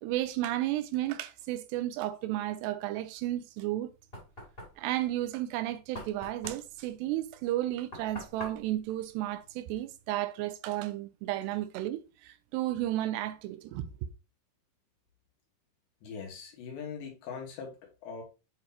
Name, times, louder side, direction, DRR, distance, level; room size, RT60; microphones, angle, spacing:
voice 1, 0.0-3.9 4.8-13.9, right 14 dB, 85° right, 2.6 m, -33 dB
Knock, 3.6-10.0, left 1 dB, 20° left, 1.9 m, -47 dB
voice 2, 16.0-17.8 18.0-18.2, left 6 dB, 80° left, 3.9 m, -41 dB
8.8 x 4.0 x 2.9 m
omnidirectional pair, 5.0 m